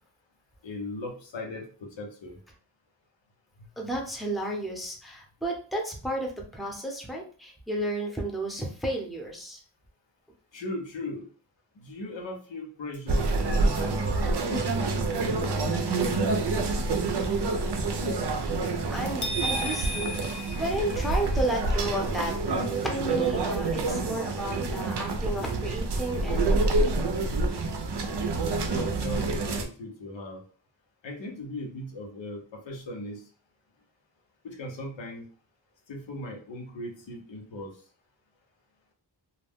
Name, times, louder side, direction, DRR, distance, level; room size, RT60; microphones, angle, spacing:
voice 1, 0.6-2.4 10.5-11.2 11.8-14.6 15.2-16.1 28.7-30.4 31.0-33.2 34.4-35.2 35.9-37.7, left 1 dB, 85° left, 0 dB, 0.8 m, -38 dB
voice 2, 3.8-9.6 18.9-27.2, right 1 dB, ahead, 0 dB, 0.7 m, -33 dB
sound 1, 13.1-29.7, right 3 dB, 65° right, 0.5 m, -27 dB
sound 2, 19.2-21.4, equal, 45° left, 0.5 m, -33 dB
2.3 x 2.1 x 3.4 m, 0.41 s
wide cardioid pair, 85°, 43 cm